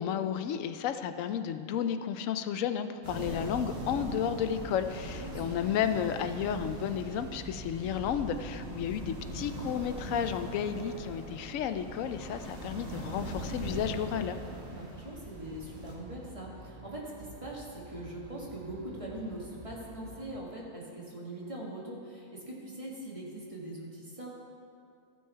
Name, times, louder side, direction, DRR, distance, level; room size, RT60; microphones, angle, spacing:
voice 1, 0.0-14.4, left 8 dB, 70° left, 10 dB, 0.9 m, -32 dB
sound 1, 3.0-15.9, right 1 dB, 65° right, 1.9 m, -41 dB
voice 2, 5.2-5.8 14.7-24.3, right 1 dB, 25° right, -4 dB, 1.6 m, -42 dB
sound 2, 15.3-20.4, right 1 dB, 40° right, 0.5 m, -50 dB
14.0 x 6.3 x 4.5 m, 2.5 s
omnidirectional pair, 1.5 m